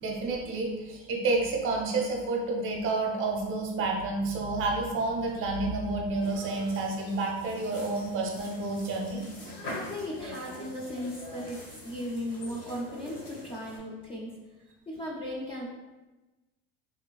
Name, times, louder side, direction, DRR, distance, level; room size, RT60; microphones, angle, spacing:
voice 1, 0.0-9.3, right 3 dB, 45° right, 0 dB, 0.6 m, -30 dB
sound 1, 6.2-13.8, left 1 dB, 65° left, 1.2 m, -44 dB
voice 2, 9.5-14.3 14.9-15.7, left 1 dB, 20° left, -3 dB, 0.4 m, -37 dB
3.1 x 2.2 x 2.2 m, 1.1 s
supercardioid pair, 120°, 30 cm